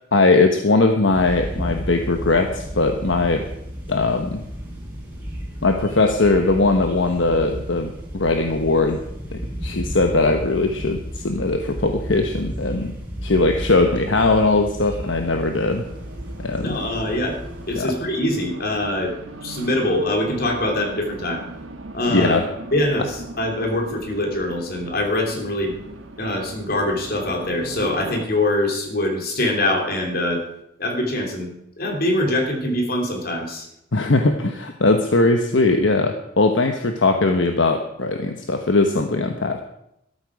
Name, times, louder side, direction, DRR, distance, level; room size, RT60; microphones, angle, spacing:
voice 1, 0.1-3.5 3.9-4.4 5.6-9.0 9.3-12.9 13.2-15.9 16.4-16.8 17.8-17.9 22.1-22.5 33.9-39.6, left 3 dB, 75° left, 5 dB, 1.1 m, -20 dB
sound 1, 1.1-17.8, equal, 10° right, 4.5 m, -33 dB
Race car auto racing, 15.7-28.3, right 1 dB, 90° right, 1.3 m, -39 dB
voice 2, 16.6-17.4 17.7-19.1 19.4-21.4 21.9-22.4 22.7-25.7 26.2-30.4 30.8-31.5 31.8-33.7, left 1 dB, 50° left, 2 dB, 3.1 m, -23 dB
13.5 x 13.0 x 4.8 m, 0.79 s
head